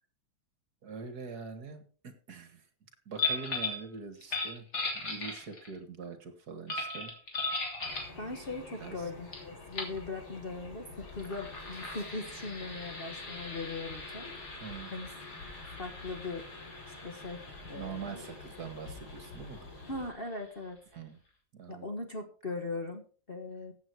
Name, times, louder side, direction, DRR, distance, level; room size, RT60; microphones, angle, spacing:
voice 1, 0.8-4.7 4.9-7.1 8.8-9.1 14.6-14.9 17.7-19.7 20.9-21.2 21.5-21.9, right 5 dB, 50° right, 9 dB, 2.0 m, -44 dB
sound 1, 3.2-3.8 4.2-5.8 6.7-8.2 9.3-9.4 9.7-10.0 11.0-20.3, left 3 dB, 50° left, 3.6 m, -39 dB
sound 2, 7.8-20.1, left 3 dB, 90° left, 4.4 m, -49 dB
voice 2, 8.2-14.6 14.9-15.1 15.6-16.5 16.9-17.4 17.7-18.2 19.9-20.8 21.7-23.7, left 3 dB, 35° left, 3 dB, 1.2 m, -40 dB
15.0 x 8.4 x 4.6 m, 0.40 s
omnidirectional pair, 2.2 m